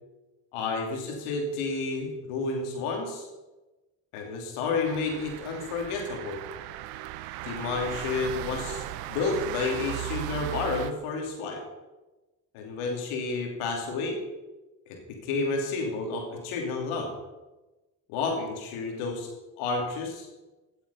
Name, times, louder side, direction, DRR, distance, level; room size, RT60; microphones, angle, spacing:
voice 1, 0.5-3.3 4.1-6.4 7.4-11.6 12.5-14.2 14.9-17.1 18.1-19.3 19.6-20.3, left 3 dB, 75° left, 2 dB, 2.9 m, -31 dB
sound 1, 4.8-10.9, right 14 dB, 80° right, 0.8 m, -37 dB
16.0 x 8.0 x 5.6 m, 1.1 s
hypercardioid pair, 45°, 50 cm